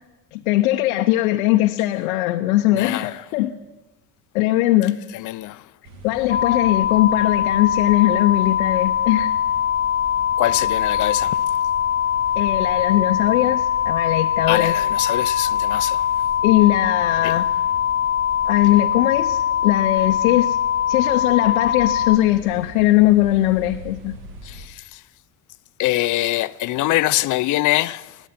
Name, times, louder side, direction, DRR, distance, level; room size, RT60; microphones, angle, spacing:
voice 1, 0.3-3.5 4.3-5.0 6.0-9.3 12.4-14.7 16.4-17.5 18.5-20.6 20.9-24.1, left 16 dB, 85° left, 0.8 m, -19 dB
voice 2, 2.7-3.2 5.1-5.6 10.4-11.4 14.5-16.1 17.2-17.3 24.4-25.0 25.8-28.2, left 17 dB, 50° left, 0.5 m, -24 dB
sound 1, 5.8-24.7, right 1 dB, 85° right, 1.9 m, -41 dB
sound 2, 6.3-22.2, left 9 dB, 20° left, 1.3 m, -22 dB
21.0 x 8.2 x 5.8 m
supercardioid pair, 80°, 40 cm